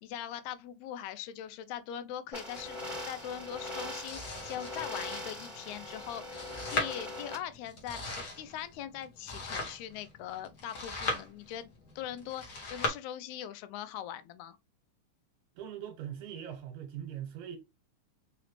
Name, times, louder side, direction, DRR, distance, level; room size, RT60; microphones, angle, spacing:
voice 1, 0.0-2.8 3.0-6.5 6.7-14.6, left 10 dB, 80° left, 1.9 m, -41 dB
sound 1, 2.3-7.3, left 1 dB, 15° right, 1.0 m, -41 dB
Domestic sounds home sounds, 2.5-12.9, left 3 dB, 60° left, 0.9 m, -40 dB
voice 2, 15.6-17.6, right 9 dB, 80° right, 2.2 m, -41 dB
4.8 x 3.0 x 3.0 m
omnidirectional pair, 3.4 m